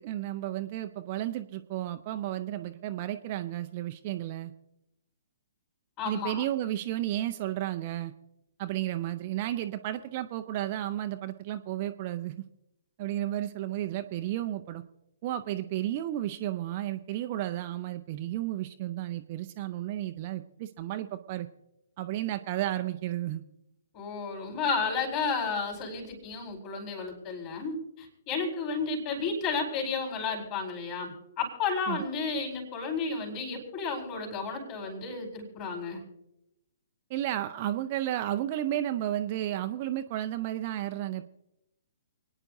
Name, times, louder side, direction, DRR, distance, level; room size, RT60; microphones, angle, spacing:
voice 1, 0.0-4.5 6.0-8.1 8.6-12.4 13.0-14.8 15.2-21.5 22.0-23.4 31.9-32.0 37.1-41.3, right 13 dB, 35° right, 8 dB, 0.6 m, -32 dB
voice 2, 6.0-6.4 23.9-36.0, left 4 dB, 30° left, 1 dB, 4.3 m, -32 dB
29.0 x 9.8 x 2.7 m, 0.88 s
figure-of-eight pair, 125°, 0 cm